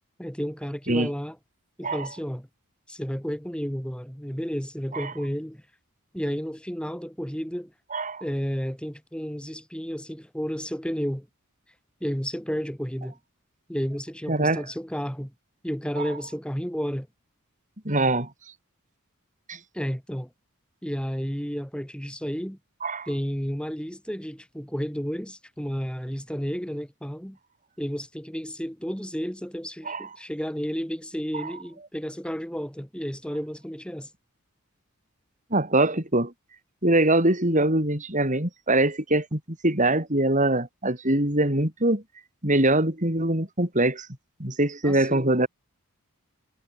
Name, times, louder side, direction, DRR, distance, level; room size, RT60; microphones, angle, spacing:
voice 1, 0.2-1.4 1.8-2.5 2.9-5.6 6.1-7.7 8.2-11.3 12.0-13.2 13.7-15.3 15.6-17.1 19.7-20.3 20.8-22.6 23.1-27.4 27.8-34.1 37.4-37.7 44.8-45.3, equal, 5° left, 4.7 m, -32 dB
voice 2, 7.9-8.2 14.3-14.6 17.9-18.3 19.5-19.6 22.8-23.1 29.9-30.1 31.4-31.5 35.5-36.3 36.8-42.0 42.4-44.1 44.4-45.5, right 1 dB, 35° right, 5.6 m, -23 dB
head